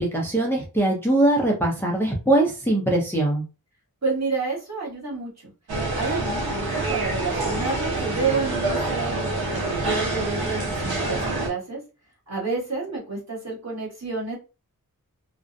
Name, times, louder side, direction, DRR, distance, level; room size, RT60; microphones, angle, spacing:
voice 1, 0.0-3.4, right 1 dB, 5° left, -1 dB, 0.5 m, -21 dB
voice 2, 4.0-5.5 5.9-11.8 12.3-14.4, right 4 dB, 45° right, -4 dB, 1.4 m, -29 dB
sound 1, 5.7-11.5, right 2 dB, 85° right, 0.8 m, -26 dB
2.5 x 2.1 x 2.5 m, 0.31 s
wide cardioid pair, 70°, 36 cm